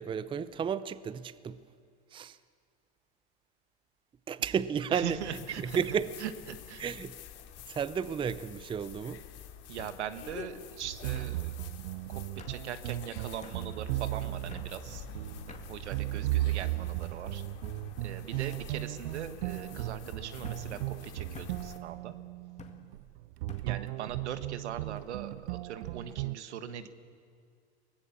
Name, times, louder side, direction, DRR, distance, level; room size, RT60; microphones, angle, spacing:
voice 1, 0.0-1.6 2.1-2.4 4.3-5.2 5.6-6.1 6.8-7.2 7.7-9.2, right 7 dB, 15° right, 16 dB, 0.6 m, -32 dB
voice 2, 4.9-5.8 6.2-6.8 9.7-11.6 12.1-12.2 12.5-15.1 15.5-17.4 18.0-22.2 23.6-26.9, right 9 dB, 80° right, 11 dB, 1.5 m, -40 dB
sound 1, 5.0-21.8, left 10 dB, 45° left, 2.7 m, -48 dB
sound 2, 6.5-6.7 7.1-7.6 8.7-8.8 9.8-10.0 11.1-11.3 12.4-12.6 13.4-13.6 14.5-14.7 15.5-15.7 16.4-16.8 17.6-17.8 18.5-18.7 19.6-19.7 20.4-20.7 21.3-21.6 22.6-22.8 23.5-23.7, left 5 dB, 20° left, 2.1 m, -50 dB
sound 3, 10.8-26.4, right 18 dB, 60° right, 0.5 m, -36 dB
24.0 x 18.5 x 7.2 m, 2.2 s
hypercardioid pair, 105°, 34 cm